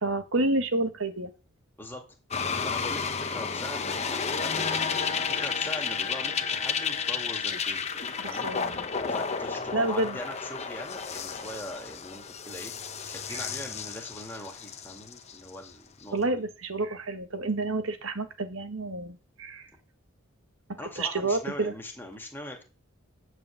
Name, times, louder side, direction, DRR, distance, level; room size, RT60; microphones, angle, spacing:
voice 1, 0.0-1.3 8.2-8.8 9.7-10.2 13.3-13.5 16.1-19.7 21.0-21.7, right 2 dB, 75° right, 9 dB, 1.4 m, -29 dB
sound 1, 2.3-15.7 16.0-16.1, left 5 dB, 30° left, 0.9 m, -32 dB
voice 2, 2.6-4.8 5.2-8.0 8.2-8.5 9.1-12.7 13.1-16.2 20.8-22.6, left 1 dB, 10° left, 2 dB, 2.1 m, -41 dB
9.2 x 5.1 x 7.1 m, 0.33 s
head